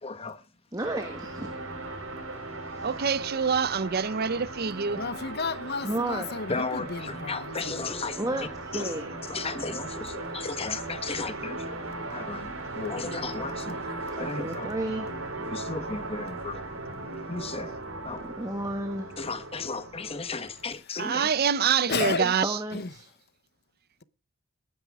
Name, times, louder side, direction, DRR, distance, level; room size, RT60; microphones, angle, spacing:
voice 1, 0.0-0.4 6.5-8.9 9.3-11.8 12.1-13.8 14.2-14.7 15.4-16.6 17.3-17.8 18.0-18.3 19.2-21.3 22.0-22.3, left 4 dB, 30° left, 1.1 m, -35 dB
voice 2, 0.7-1.5 2.8-2.9 5.8-6.3 8.2-8.5 8.7-9.4 14.4-15.1 18.4-19.1 22.4-23.0, right 1 dB, 15° right, 1.3 m, -32 dB
sound 1, 0.8-20.7, right 2 dB, 75° right, 4.7 m, -38 dB
voice 3, 2.8-5.0 21.0-22.6, right 6 dB, 50° right, 0.6 m, -26 dB
voice 4, 4.9-7.9 21.9-22.2 22.7-22.9, left 4 dB, 50° left, 0.9 m, -33 dB
19.5 x 9.8 x 3.6 m
head